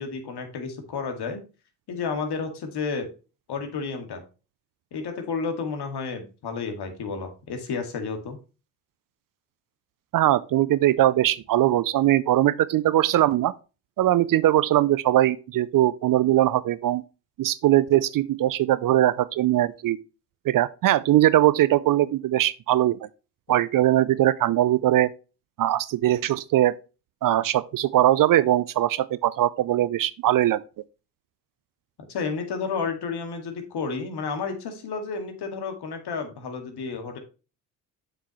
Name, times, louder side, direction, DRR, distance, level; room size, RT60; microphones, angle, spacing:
voice 1, 0.0-1.4 1.9-3.1 3.5-4.2 4.9-8.4 32.1-37.2, left 5 dB, 55° left, 2.2 m, -31 dB
voice 2, 10.1-13.5 14.0-17.0 17.4-20.0 20.5-23.0 23.5-25.1 25.6-26.8 27.2-30.6, right 13 dB, 45° right, 0.5 m, -21 dB
7.3 x 6.8 x 3.1 m
hypercardioid pair, 55°, 46 cm